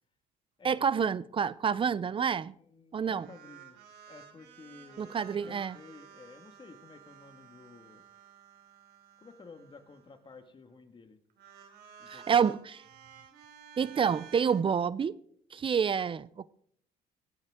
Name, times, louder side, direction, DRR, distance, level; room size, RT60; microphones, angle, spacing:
voice 1, 0.6-2.5 2.9-3.3 5.0-5.8 12.1-12.8 13.8-15.2 15.5-16.5, right 7 dB, 30° right, 0.6 m, -28 dB
voice 2, 2.6-3.8 4.1-8.1 9.2-11.2 12.0-12.5, left 4 dB, 30° left, 1.8 m, -53 dB
sound 1, 3.1-10.5 11.3-14.6, right 8 dB, 75° right, 3.0 m, -54 dB
24.0 x 9.3 x 3.7 m
cardioid pair, 110°, 17 cm